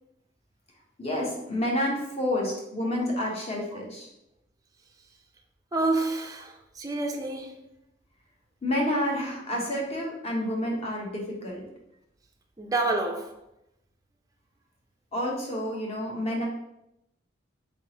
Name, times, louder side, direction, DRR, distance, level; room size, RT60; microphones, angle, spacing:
voice 1, 1.0-4.1 8.6-11.7 15.1-16.5, left 1 dB, 35° left, 0.9 m, -29 dB
voice 2, 5.7-7.6 12.6-13.3, right 2 dB, 20° right, 0.4 m, -28 dB
3.9 x 3.5 x 2.9 m
head